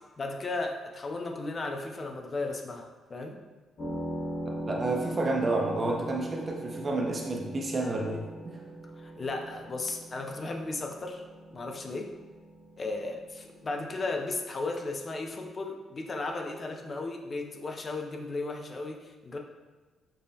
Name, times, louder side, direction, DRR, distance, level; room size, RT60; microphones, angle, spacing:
voice 1, 0.0-3.4 9.0-11.2 11.5-12.1 12.8-19.4, left 3 dB, 30° left, 3 dB, 0.4 m, -35 dB
sound 1, 3.8-14.0, right 1 dB, 55° left, 1.0 m, -40 dB
voice 2, 4.6-8.6, right 2 dB, 30° right, 0 dB, 0.6 m, -30 dB
5.4 x 2.1 x 2.7 m, 1.3 s
cardioid pair, 125°, 0 cm